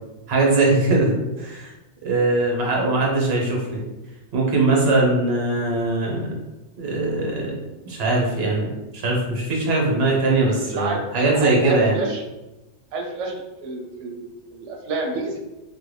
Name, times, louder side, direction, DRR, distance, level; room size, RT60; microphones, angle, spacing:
voice 1, 0.3-1.7 2.0-3.8 4.3-6.3 6.8-7.6 7.8-12.0, right 2 dB, 60° right, -2 dB, 1.0 m, -21 dB
voice 2, 10.6-11.0 11.4-12.2 12.9-15.4, right 3 dB, 85° right, 2 dB, 0.9 m, -28 dB
3.3 x 2.2 x 3.1 m, 1.0 s
omnidirectional pair, 1.2 m